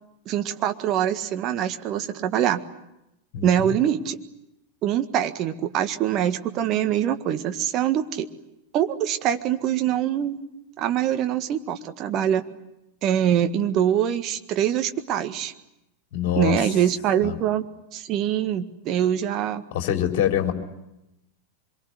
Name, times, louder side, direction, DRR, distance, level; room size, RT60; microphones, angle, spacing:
voice 1, 0.2-2.6 3.4-4.2 4.8-8.3 8.7-10.4 10.8-12.4 13.0-15.5 16.4-17.6 17.9-19.6, right 10 dB, 35° right, 8 dB, 1.7 m, -24 dB
voice 2, 3.3-3.7 16.1-16.6 17.2-17.4 19.7-20.5, left 10 dB, 45° left, 4 dB, 4.1 m, -24 dB
25.5 x 23.0 x 9.6 m, 0.89 s
figure-of-eight pair, 90°, 0 cm